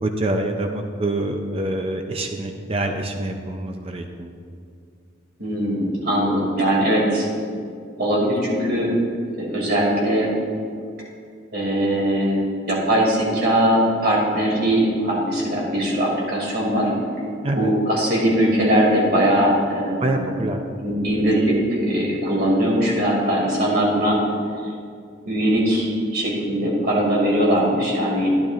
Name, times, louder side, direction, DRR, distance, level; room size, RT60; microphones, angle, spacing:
voice 1, 0.0-4.3 17.4-17.7 20.0-20.6, right 1 dB, 30° right, 4 dB, 0.5 m, -25 dB
voice 2, 5.4-7.3 8.0-8.9 9.4-10.3 11.5-12.4 12.7-16.9 17.5-20.4 20.8-24.2 25.2-28.3, equal, 55° right, -3 dB, 2.5 m, -20 dB
12.0 x 10.5 x 2.5 m, 2.3 s
head